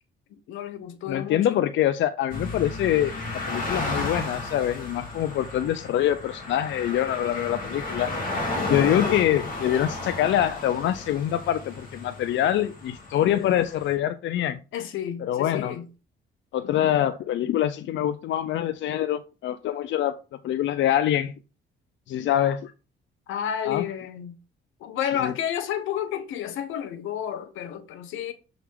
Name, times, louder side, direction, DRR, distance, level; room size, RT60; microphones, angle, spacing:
voice 1, 0.3-1.7 14.7-15.9 16.7-16.9 22.4-22.5 23.3-24.3 24.8-28.3, left 9 dB, 90° left, 1.0 m, -31 dB
voice 2, 1.1-8.1 8.7-14.6 15.3-15.7 16.5-20.2 20.4-21.3 22.1-22.7 23.7-23.8 25.2-25.3, left 11 dB, 70° left, 0.5 m, -25 dB
sound 1, 2.3-13.9, left 2 dB, 45° left, 2.7 m, -33 dB
6.8 x 4.0 x 4.6 m
cardioid pair, 90°, 20 cm